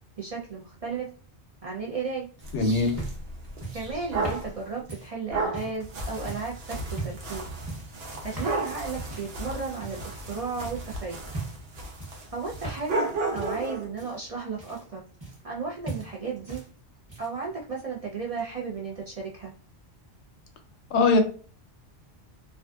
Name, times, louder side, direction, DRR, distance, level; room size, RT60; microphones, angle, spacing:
voice 1, 0.2-1.1 1.6-2.3 3.7-7.5 8.2-11.2 12.3-13.1 13.3-15.0 15.4-16.6 17.2-19.5, right 4 dB, 50° right, -3 dB, 0.4 m, -34 dB
sound 1, 2.4-5.8 6.3-6.6 6.9-7.3 7.7-8.0 8.3-8.6 9.1-9.4 9.8-10.3 10.6-10.9 11.3-11.7 12.0-13.1 13.3-15.6 15.9-16.7 17.0-17.4 18.4-18.5, right 3 dB, 25° right, 0.8 m, -39 dB
sound 2, 2.4-4.5 5.3-13.9, right 2 dB, 70° right, 0.9 m, -34 dB
voice 2, 2.5-2.9 20.9-21.2, left 3 dB, 85° left, 6 dB, 0.9 m, -21 dB
2.4 x 2.3 x 2.3 m, 0.41 s
omnidirectional pair, 1.1 m